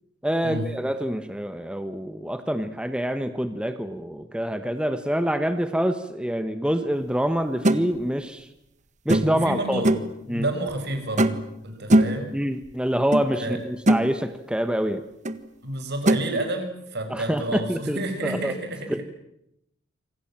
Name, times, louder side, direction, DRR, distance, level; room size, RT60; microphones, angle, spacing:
voice 1, 0.2-8.5 9.0-9.9 10.3-10.5 12.3-15.0 17.1-18.5 18.9-19.0, equal, 5° right, 9 dB, 1.3 m, -26 dB
sound 1, 7.6-7.8 9.1-9.4 9.8-10.1 11.2-11.5 11.9-12.2 13.1-13.2 13.6-14.1 15.2-15.4 16.1-16.2, right 1 dB, 40° right, 1.6 m, -20 dB
voice 2, 9.2-10.0 10.2-11.4 11.6-12.3 13.3-13.6 15.6-19.0, right 1 dB, 60° right, 6 dB, 6.3 m, -30 dB
28.0 x 26.0 x 7.6 m, 0.81 s
head